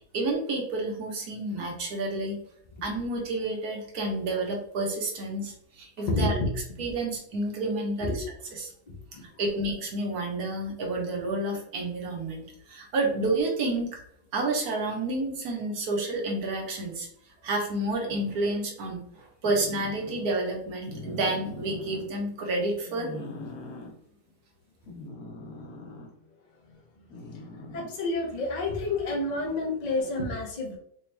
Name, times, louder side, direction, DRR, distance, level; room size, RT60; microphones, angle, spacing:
voice 1, 0.1-2.4 2.8-6.4 6.8-8.2 8.5-8.7 9.4-14.0 14.3-17.1 17.4-23.1, right 2 dB, 80° right, 0 dB, 1.5 m, -30 dB
voice 2, 6.1-6.5 8.0-8.2 8.9-9.2 27.7-30.8, left 2 dB, 40° left, 0 dB, 0.6 m, -29 dB
sound 1, 18.1-18.5 19.4-20.3 20.9-22.1 22.8-23.9 24.9-26.1 27.1-28.1 29.9-30.0, left 2 dB, 75° left, 1.3 m, -42 dB
4.2 x 2.3 x 3.2 m, 0.71 s
omnidirectional pair, 1.6 m